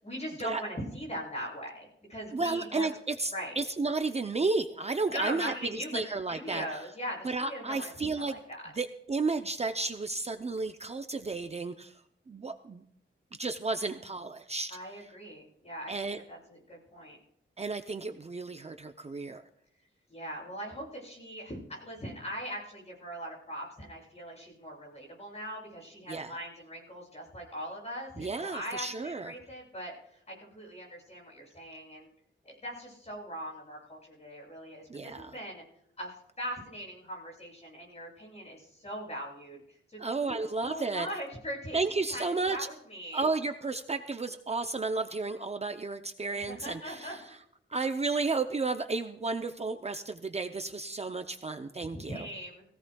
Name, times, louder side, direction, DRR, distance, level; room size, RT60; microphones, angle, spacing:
voice 1, 0.0-2.9 3.3-3.5 5.1-6.0 6.3-8.7 14.7-15.9 16.3-17.2 20.1-32.1 32.4-35.6 36.0-41.8 42.1-43.2 46.3-47.3 51.8-52.7, equal, 30° left, -3 dB, 7.8 m, -40 dB
voice 2, 2.3-6.6 7.2-8.4 8.7-12.8 13.4-14.8 15.9-16.2 17.6-19.5 26.1-26.4 28.2-29.4 34.9-35.3 40.0-41.1 41.7-42.7 43.1-47.4 47.7-52.3, right 3 dB, 30° right, 7 dB, 0.6 m, -33 dB
22.5 x 16.5 x 2.3 m, 0.71 s
wide cardioid pair, 170°, 21 cm